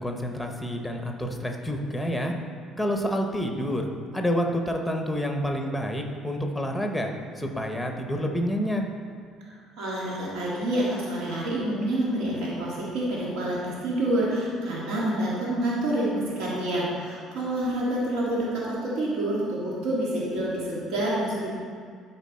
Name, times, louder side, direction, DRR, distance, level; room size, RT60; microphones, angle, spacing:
voice 1, 0.0-2.3 2.8-8.8, equal, ahead, 3 dB, 0.6 m, -28 dB
voice 2, 9.8-21.5, right 1 dB, 90° right, -6 dB, 2.0 m, -27 dB
12.0 x 4.5 x 4.2 m, 2.1 s
cardioid pair, 180°, 0 cm